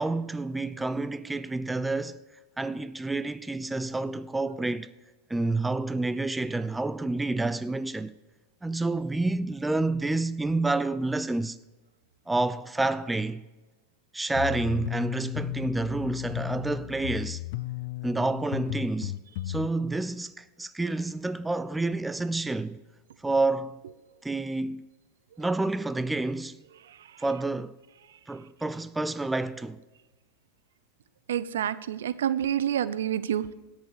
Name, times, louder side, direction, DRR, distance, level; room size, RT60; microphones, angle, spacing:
voice 1, 0.0-2.2 2.6-4.9 5.3-8.1 8.6-11.6 12.3-13.4 14.1-17.4 18.0-19.2 19.5-22.8 23.2-23.8 24.2-24.8 25.4-26.6 27.2-27.7 28.3-29.8, right 2 dB, 10° right, 0.4 m, -29 dB
sound 1, 14.3-19.7, left 17 dB, 65° left, 0.5 m, -34 dB
voice 2, 31.3-33.5, right 10 dB, 80° right, 0.5 m, -28 dB
17.0 x 6.8 x 4.8 m
hypercardioid pair, 105°, 0 cm